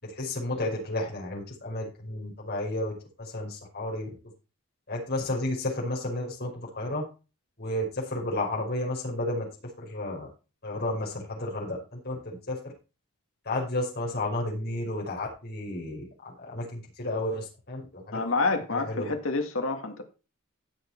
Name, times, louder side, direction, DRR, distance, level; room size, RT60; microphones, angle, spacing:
voice 1, 0.0-4.1 4.9-7.0 7.6-9.5 9.8-10.3 10.6-12.7 13.4-18.2 18.7-19.1, left 1 dB, 50° left, 5.5 m, -32 dB
voice 2, 18.1-20.0, left 3 dB, 65° left, 1.8 m, -28 dB
16.0 x 6.4 x 4.5 m
head